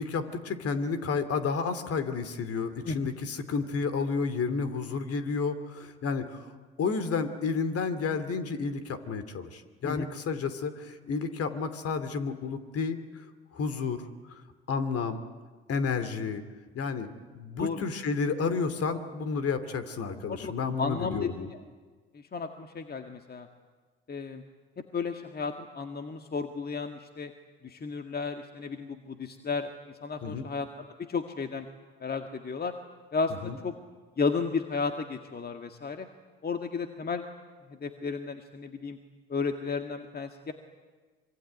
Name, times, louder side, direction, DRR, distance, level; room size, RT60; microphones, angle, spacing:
voice 1, 0.0-6.5 6.8-13.3 13.5-14.0 14.7-15.2 15.7-16.4 16.7-17.1 17.3-21.5 30.2-30.4 33.4-33.6, left 5 dB, 50° left, 11 dB, 2.8 m, -31 dB
voice 2, 20.8-21.5 22.1-23.5 24.1-24.4 24.9-27.3 27.6-29.7 30.0-30.7 31.1-31.7 32.0-32.7 33.1-33.7 34.2-36.1 36.4-37.3 37.8-39.0 39.3-40.5, left 4 dB, 30° left, 6 dB, 1.9 m, -33 dB
25.5 x 24.0 x 9.6 m, 1.4 s
hypercardioid pair, 60°, 31 cm